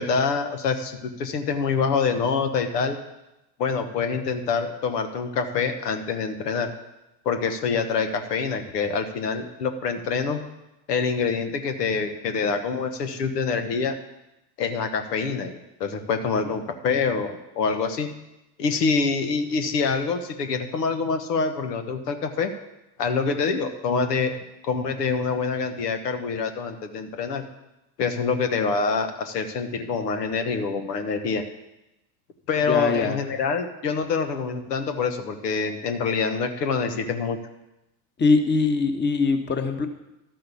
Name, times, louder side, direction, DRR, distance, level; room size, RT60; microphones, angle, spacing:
voice 1, 0.0-3.0 3.6-6.7 7.2-10.4 10.9-13.9 14.6-18.1 18.6-22.5 23.0-24.3 24.6-27.4 28.0-31.4 32.5-37.4, left 5 dB, 85° left, 7 dB, 1.2 m, -26 dB
voice 2, 32.7-33.2 38.2-39.9, left 4 dB, 25° left, 6 dB, 1.2 m, -22 dB
12.5 x 5.7 x 6.9 m, 0.93 s
hypercardioid pair, 85°, 47 cm